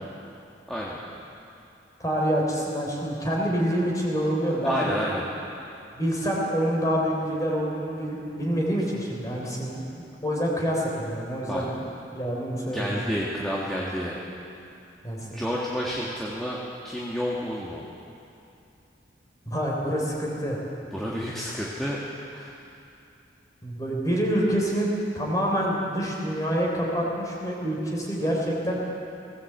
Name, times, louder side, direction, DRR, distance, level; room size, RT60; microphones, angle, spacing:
voice 1, 2.0-4.9 5.9-9.8 10.2-11.7 12.1-13.0 15.0-15.4 19.5-20.6 23.6-28.8, equal, 20° left, -3 dB, 3.6 m, -27 dB
voice 2, 4.6-5.2 11.5-11.6 12.6-14.2 15.2-16.6 16.8-17.8 20.9-22.0 22.3-22.6, equal, ahead, -6 dB, 1.9 m, -30 dB
19.0 x 17.5 x 8.0 m, 2.6 s
head